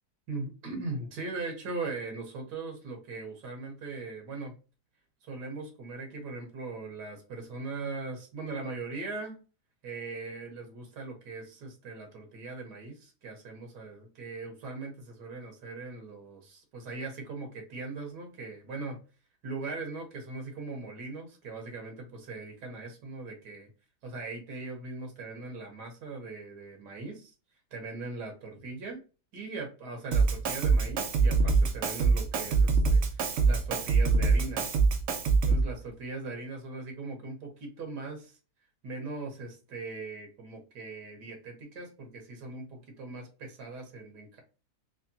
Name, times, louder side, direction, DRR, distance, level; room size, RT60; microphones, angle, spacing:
voice 1, 0.3-4.5 5.2-9.4 9.8-19.0 19.4-23.7 24.0-27.3 27.7-29.0 29.3-34.7 35.5-38.4 38.8-44.4, right 3 dB, 80° right, 3 dB, 1.6 m, -40 dB
Drum kit, 30.1-35.7, right 4 dB, 65° right, 0.8 m, -24 dB
3.5 x 3.2 x 2.7 m, 0.34 s
omnidirectional pair, 1.7 m